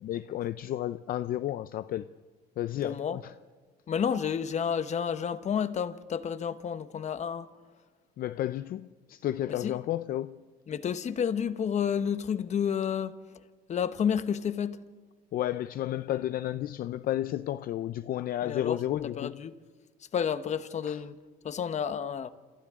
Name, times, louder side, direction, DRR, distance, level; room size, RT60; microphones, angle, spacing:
voice 1, 0.0-2.1 2.6-3.3 8.2-10.4 15.3-19.3 20.9-21.0, left 12 dB, 60° left, 0.5 m, -32 dB
voice 2, 2.8-3.2 3.9-7.5 9.5-9.8 10.7-13.2 13.7-14.8 18.4-19.6 20.1-21.2 21.4-22.3, left 7 dB, 45° left, 1.1 m, -30 dB
27.5 x 27.5 x 3.7 m
cardioid pair, 110°, 17 cm